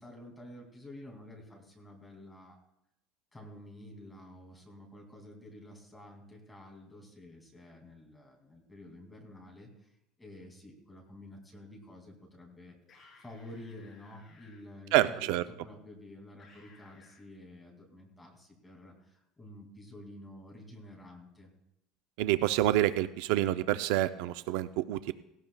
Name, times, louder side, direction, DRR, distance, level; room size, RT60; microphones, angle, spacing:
voice 1, 0.0-2.6 3.3-9.9 10.2-12.8 13.2-21.5, left 1 dB, 5° left, 0 dB, 2.4 m, -50 dB
sound 1, 12.8-14.6 16.4-17.2, left 4 dB, 25° left, 3.8 m, -60 dB
voice 2, 14.9-15.4 22.2-25.1, right 14 dB, 70° right, 12 dB, 0.4 m, -27 dB
18.0 x 17.0 x 2.3 m, 0.83 s
cardioid pair, 165°, 0 cm